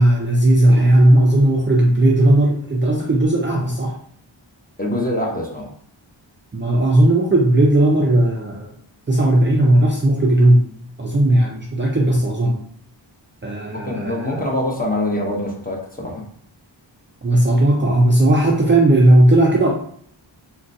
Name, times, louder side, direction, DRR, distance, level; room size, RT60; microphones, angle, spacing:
voice 1, 0.0-3.9 6.5-8.7 9.1-10.6 11.0-12.6 13.4-14.4 17.2-19.7, right 1 dB, 25° right, -2 dB, 0.5 m, -16 dB
voice 2, 4.8-5.7 13.7-16.3, left 1 dB, 20° left, -2 dB, 0.8 m, -24 dB
3.7 x 2.2 x 2.6 m, 0.62 s
wide cardioid pair, 90°, 47 cm